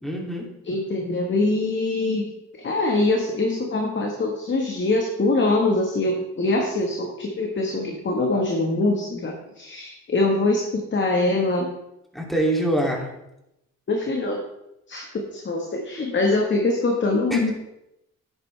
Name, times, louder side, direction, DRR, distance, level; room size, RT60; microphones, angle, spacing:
voice 1, 0.0-0.5 12.1-13.1 17.3-17.5, right 1 dB, ahead, -1 dB, 2.8 m, -24 dB
voice 2, 0.6-2.3 2.6-11.7 13.9-14.4 14.9-17.5, left 2 dB, 40° left, 1 dB, 1.6 m, -23 dB
10.5 x 9.6 x 3.4 m, 0.86 s
cardioid pair, 90°, 30 cm